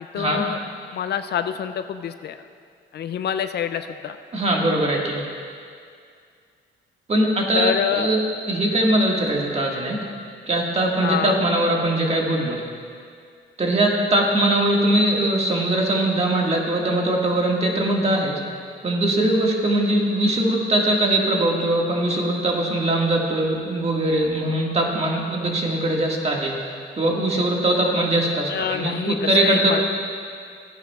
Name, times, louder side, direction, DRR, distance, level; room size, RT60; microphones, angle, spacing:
voice 1, 0.1-0.6 0.9-2.4 2.9-4.2 7.5-8.1 11.0-11.4 28.5-29.8, left 9 dB, 55° left, 10 dB, 0.4 m, -26 dB
voice 2, 4.3-5.2 7.1-10.0 10.5-12.6 13.6-18.4 18.8-29.8, right 1 dB, 30° right, -1 dB, 1.8 m, -21 dB
15.0 x 9.9 x 2.4 m, 2.2 s
cardioid pair, 90°, 20 cm